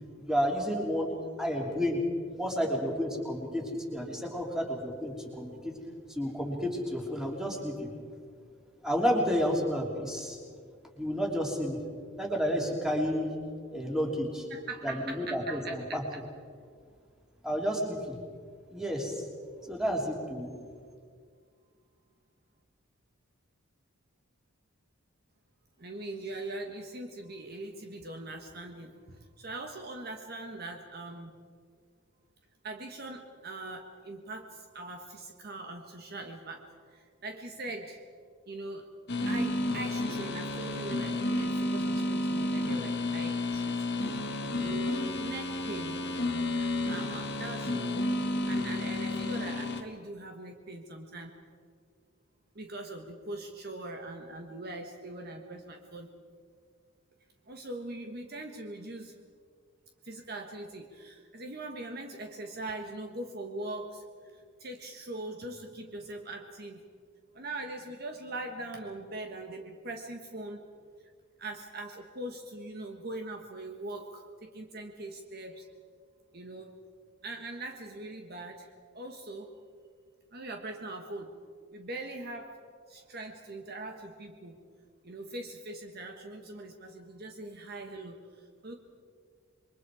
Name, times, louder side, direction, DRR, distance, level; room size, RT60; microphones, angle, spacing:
voice 1, 0.2-1.1 1.4-2.0 2.4-5.7 6.1-7.9 8.8-10.4 11.0-11.8 12.2-13.3 13.7-14.5 14.8-16.0 17.4-18.2 18.7-19.2 19.7-20.5, equal, 5° right, -1 dB, 3.3 m, -31 dB
voice 2, 14.5-16.0 25.8-31.3 32.6-38.0 38.5-38.9 39.3-44.3 44.6-46.0 46.5-51.3 52.5-56.1 57.5-59.1 60.0-64.0 64.3-66.8 67.3-70.6 71.4-75.6 76.3-76.7 77.2-78.7 78.9-79.5 80.3-81.3 81.7-82.6 82.9-84.6 85.0-88.7, right 2 dB, 45° right, 4 dB, 1.4 m, -41 dB
sound 1, 39.1-49.8, left 2 dB, 50° left, 1.7 m, -31 dB
28.0 x 22.5 x 4.9 m, 2.1 s
head